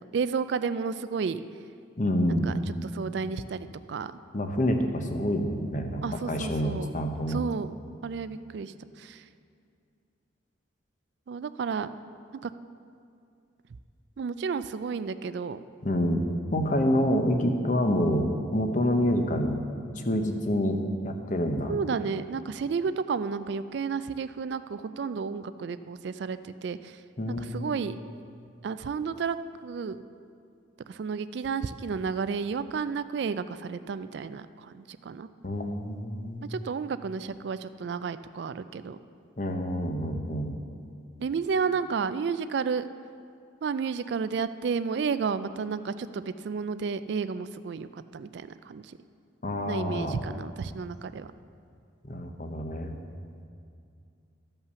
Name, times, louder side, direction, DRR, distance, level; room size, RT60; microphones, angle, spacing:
voice 1, 0.0-1.4 2.3-2.5 2.8-4.1 6.0-6.9 7.3-7.7 8.0-9.2 11.3-11.9 12.4-12.5 14.2-15.6 21.7-27.0 27.3-28.0 28.6-29.4 29.6-30.0 30.9-35.3 36.5-39.0 41.2-42.9 43.6-49.0 49.7-51.3, right 5 dB, 60° right, 13 dB, 0.3 m, -32 dB
voice 2, 2.0-2.5 4.3-7.4 15.8-16.2 16.5-19.6 20.0-20.8 21.0-21.7 27.2-27.7 35.4-36.5 39.4-40.5 49.4-50.2 52.0-52.9, equal, 40° left, 5 dB, 0.8 m, -27 dB
13.0 x 5.6 x 6.8 m, 2.4 s
head